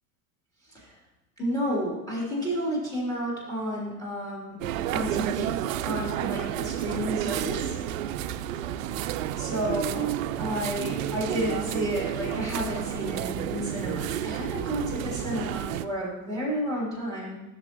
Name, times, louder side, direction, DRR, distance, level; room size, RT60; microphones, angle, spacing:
voice 1, 1.4-4.6 4.9-5.5 5.8-7.8 9.4-17.4, equal, 10° left, -5 dB, 3.3 m, -31 dB
sound 1, 4.6-15.9, right 11 dB, 60° right, 0.5 m, -31 dB
13.0 x 6.8 x 3.0 m, 1.0 s
hypercardioid pair, 95°, 45 cm